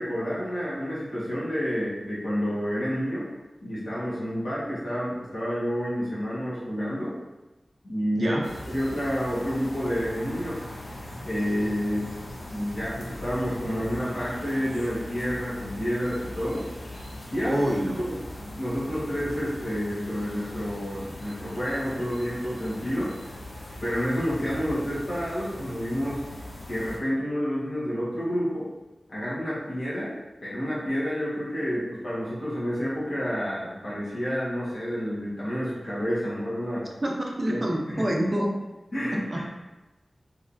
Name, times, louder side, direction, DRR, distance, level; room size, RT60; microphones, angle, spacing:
voice 1, 0.0-3.2 3.6-7.2 7.8-8.4 8.7-10.6 11.2-12.1 12.5-16.7 17.3-17.5 18.0-23.1 23.8-26.2 26.7-28.7 29.1-30.1 30.4-36.8 37.5-38.1 38.9-39.4, equal, 70° left, -8 dB, 1.3 m, -29 dB
sound 1, 8.4-27.0, left 1 dB, 85° left, 0.5 m, -40 dB
voice 2, 17.4-18.1 37.0-38.5 39.1-39.4, equal, 35° right, 0 dB, 0.5 m, -27 dB
3.2 x 2.9 x 2.6 m, 1.1 s
wide cardioid pair, 90°, 0 cm